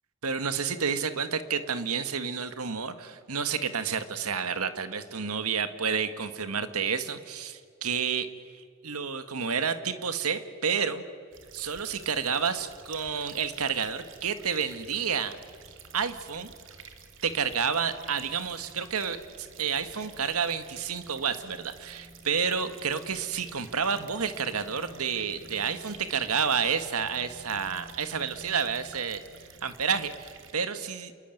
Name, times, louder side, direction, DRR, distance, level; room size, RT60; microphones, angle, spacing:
voice 1, 0.2-8.3 8.8-11.0 11.5-15.4 15.9-16.5 17.2-29.2 29.6-31.1, right 6 dB, 90° right, 10 dB, 1.6 m, -30 dB
sound 1, 11.3-30.5, right 5 dB, 60° right, 2.2 m, -50 dB
28.0 x 21.0 x 9.2 m, 2.1 s
head